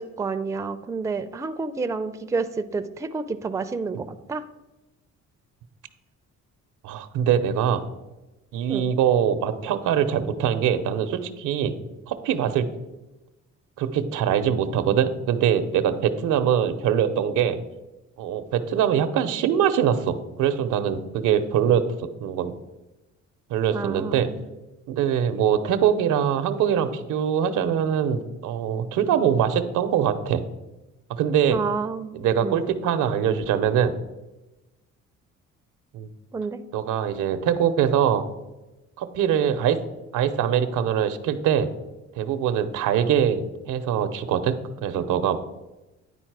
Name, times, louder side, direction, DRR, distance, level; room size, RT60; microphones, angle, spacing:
voice 1, 0.0-4.4 8.7-8.9 23.7-24.5 31.5-32.6 36.3-36.6, right 4 dB, 10° right, 10 dB, 0.4 m, -30 dB
voice 2, 6.8-7.9 8.5-11.7 12.1-12.7 13.8-17.6 18.2-21.9 22.2-22.5 23.5-24.3 24.9-30.4 31.1-31.6 32.1-33.9 35.9-36.1 36.7-38.3 39.0-39.8 40.1-41.7 42.2-45.4, right 8 dB, 85° right, 11 dB, 0.7 m, -23 dB
9.8 x 4.2 x 4.6 m, 1.1 s
cardioid pair, 90°, 30 cm